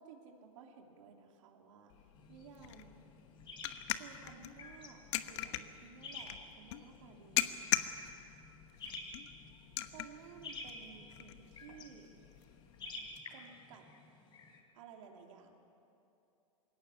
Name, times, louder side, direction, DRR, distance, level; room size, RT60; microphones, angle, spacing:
voice 1, 0.0-1.9 2.3-3.1 4.0-7.6 9.9-12.2 13.3-13.9 14.7-15.6, right 6 dB, 65° right, 2 dB, 2.9 m, -55 dB
sound 1, 1.9-13.2, left 14 dB, 55° left, 1.1 m, -41 dB
sound 2, 2.1-14.6, left 3 dB, 25° left, 3.8 m, -52 dB
21.0 x 17.5 x 9.8 m, 2.8 s
hypercardioid pair, 130°, 18 cm